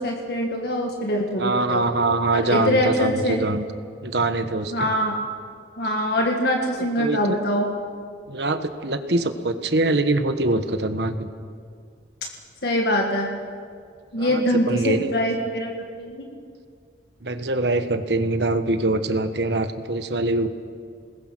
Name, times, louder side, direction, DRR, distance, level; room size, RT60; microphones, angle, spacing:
voice 1, 0.0-1.8 2.3-3.4 4.7-5.2 5.8-7.7 12.6-13.3 14.1-16.2, equal, 60° left, 1 dB, 1.8 m, -23 dB
voice 2, 1.4-3.6 4.0-4.9 6.7-7.4 8.3-11.3 14.2-15.1 17.2-20.5, right 2 dB, 70° right, 9 dB, 1.3 m, -24 dB
28.5 x 20.0 x 6.2 m, 2.1 s
head